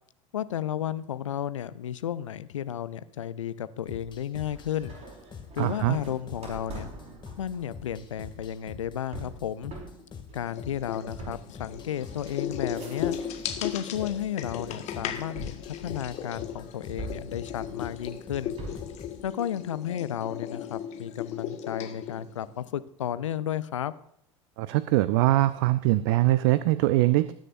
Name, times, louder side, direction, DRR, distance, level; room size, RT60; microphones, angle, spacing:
voice 1, 0.3-4.9 5.5-6.9 7.4-9.7 10.3-13.2 13.6-18.6 19.2-23.9, left 10 dB, 70° left, 15 dB, 0.6 m, -33 dB
sound 1, 3.9-19.2, left 6 dB, 30° left, 2.3 m, -46 dB
sound 2, 4.4-13.6 14.0-14.6 15.4-16.4 17.0-19.0, right 2 dB, 40° right, 4.8 m, -44 dB
voice 2, 5.6-6.0 24.6-27.3, right 16 dB, 55° right, 15 dB, 0.6 m, -22 dB
sound 3, 10.5-22.7, left 9 dB, 45° left, 1.6 m, -37 dB
20.0 x 9.9 x 2.6 m, 0.71 s
figure-of-eight pair, 70°, 17 cm